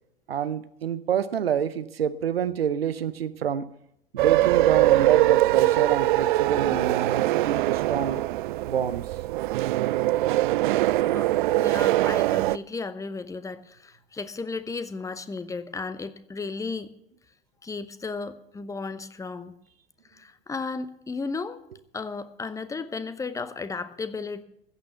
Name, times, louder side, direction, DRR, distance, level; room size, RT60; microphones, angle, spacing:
voice 1, 0.3-3.7 4.1-8.2 8.6-9.0, right 8 dB, 70° right, 14 dB, 0.9 m, -27 dB
sound 1, 4.2-12.6, right 16 dB, 55° right, 0.4 m, -22 dB
voice 2, 11.6-16.9 17.6-19.5 20.1-21.6 21.9-24.4, left 4 dB, 10° left, 13 dB, 0.8 m, -34 dB
14.5 x 8.8 x 6.9 m, 0.76 s
figure-of-eight pair, 85°, 30 cm